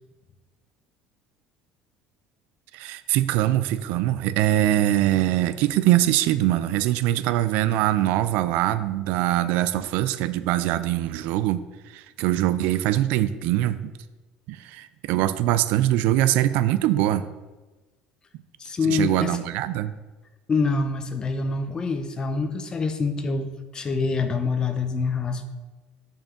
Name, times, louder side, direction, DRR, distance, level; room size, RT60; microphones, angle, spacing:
voice 1, 2.7-13.9 14.5-17.2 18.8-19.9, right 13 dB, 75° right, 14 dB, 0.4 m, -23 dB
voice 2, 18.6-19.4 20.5-25.4, left 4 dB, 25° left, 8 dB, 0.7 m, -26 dB
6.4 x 4.4 x 6.0 m, 1.2 s
cardioid pair, 115°, 3 cm